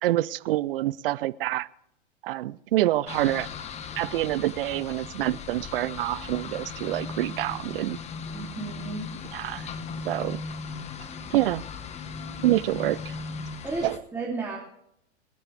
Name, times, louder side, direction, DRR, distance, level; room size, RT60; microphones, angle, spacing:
voice 1, 0.0-1.7 2.2-3.5 4.0-8.0 9.3-9.7 10.0-10.4 11.3-11.7 12.4-13.2 13.8-14.0, right 15 dB, 55° right, 0.6 m, -26 dB
sound 1, 3.1-14.0, left 5 dB, 20° left, 1.1 m, -38 dB
voice 2, 8.3-9.1 13.6-13.9 14.1-14.6, right 3 dB, 5° right, 2.8 m, -32 dB
27.5 x 10.0 x 3.4 m
hypercardioid pair, 125°, 35 cm